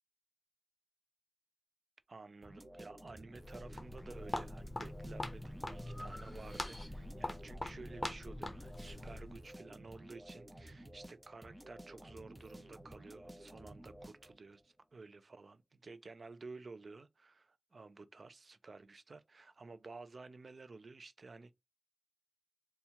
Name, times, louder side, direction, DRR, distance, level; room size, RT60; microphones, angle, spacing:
voice 1, 2.1-21.5, right 3 dB, 85° right, 0.4 m, -53 dB
sound 1, 2.4-14.6, right 1 dB, 30° right, 0.8 m, -54 dB
Walk footsteps, 3.3-9.5, left 2 dB, 45° left, 0.6 m, -43 dB
Breathing, 4.1-4.6 5.1-7.3, equal, 10° left, 1.7 m, -55 dB
4.3 x 2.3 x 2.7 m
wide cardioid pair, 70°, 0 cm